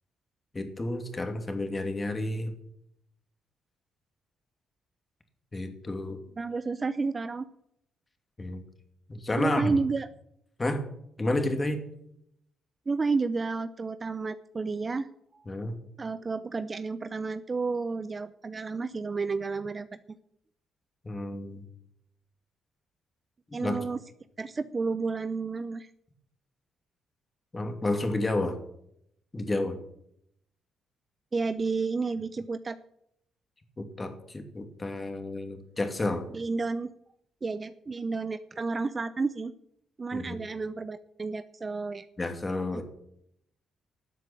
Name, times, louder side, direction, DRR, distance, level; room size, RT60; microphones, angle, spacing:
voice 1, 0.5-2.5 5.5-6.2 8.4-8.6 9.1-9.8 10.6-10.8 11.2-11.8 15.5-15.7 21.0-21.6 23.6-23.9 27.5-28.6 29.3-29.8 33.8-36.3 40.1-40.4 42.2-42.8, left 2 dB, 25° left, 6 dB, 2.6 m, -30 dB
voice 2, 6.4-7.5 9.4-10.1 12.9-15.1 15.3-15.5 16.0-19.9 23.5-24.0 24.4-25.9 31.3-32.8 36.3-36.9 37.4-39.5 40.0-42.1 42.7-42.8, right 4 dB, 30° right, 13 dB, 0.7 m, -31 dB
12.5 x 7.5 x 8.9 m, 0.73 s
cardioid pair, 90°, 0 cm